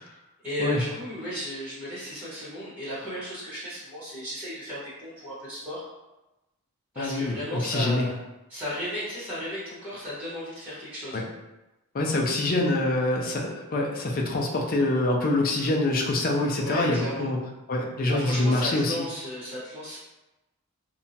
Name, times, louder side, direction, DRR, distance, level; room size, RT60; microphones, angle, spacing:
voice 1, 0.4-5.8 6.9-8.1 8.5-11.2 16.5-17.3 18.1-20.0, equal, 10° right, -12 dB, 1.1 m, -35 dB
voice 2, 7.0-8.1 11.1-11.2 11.9-17.4 17.7-19.0, left 2 dB, 40° left, 0 dB, 0.4 m, -25 dB
2.7 x 2.2 x 2.7 m, 0.99 s
head